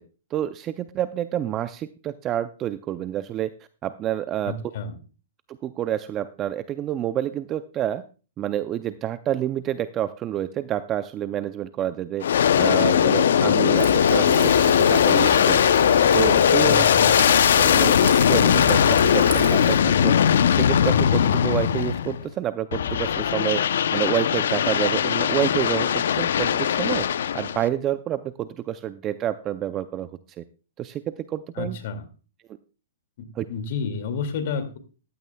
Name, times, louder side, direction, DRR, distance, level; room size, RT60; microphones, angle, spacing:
voice 1, 0.3-3.5 3.8-4.5 5.5-8.0 8.4-12.3 12.6-16.8 17.6-20.2 20.5-23.7 23.9-27.1 27.3-30.1 30.4-30.5 30.8-31.8 33.3-33.5, right 11 dB, 25° right, 13 dB, 0.4 m, -28 dB
voice 2, 4.5-5.0 16.6-17.2 31.6-32.1 33.2-34.8, left 5 dB, 55° left, 8 dB, 2.2 m, -31 dB
Aircraft, 12.2-22.2 22.7-27.7, left 8 dB, 70° left, 0.6 m, -19 dB
Thunder, 13.7-19.8, right 5 dB, 90° right, 6.1 m, -34 dB
sound 1, 21.1-21.2, left 4 dB, 20° left, 3.4 m, -49 dB
14.5 x 13.0 x 2.3 m, 0.36 s
hypercardioid pair, 145°, 0 cm